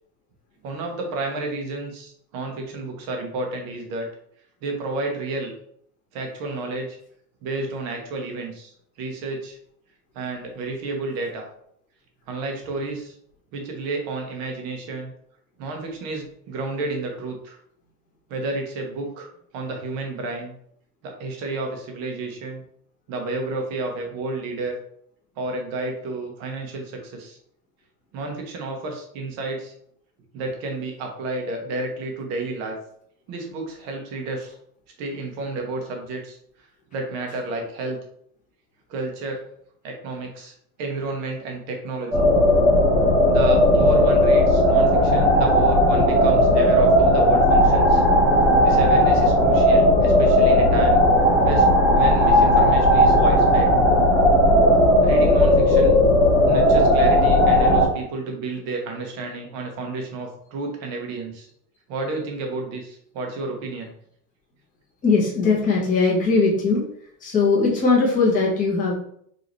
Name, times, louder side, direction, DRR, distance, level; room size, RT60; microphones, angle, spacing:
voice 1, 0.6-4.1 4.6-5.5 6.1-7.0 7.4-8.7 9.0-9.6 10.1-11.5 12.3-13.1 13.5-15.1 15.6-17.6 18.3-20.5 21.0-22.6 23.1-24.7 25.4-27.4 28.1-29.7 30.3-32.8 33.3-34.5 35.0-36.4 36.9-38.0 38.9-39.4 39.8-40.5 40.8-42.3 43.2-48.0 48.6-51.0 51.4-51.7 51.9-53.7 55.0-55.9 56.5-61.5 61.9-63.9, right 2 dB, 35° right, 2 dB, 0.9 m, -31 dB
sound 1, 42.1-57.9, equal, ahead, 0.9 m, -16 dB
voice 2, 65.0-66.8 67.2-68.9, left 4 dB, 15° left, -5 dB, 1.2 m, -19 dB
5.0 x 2.8 x 3.1 m, 0.67 s
supercardioid pair, 165°, 48 cm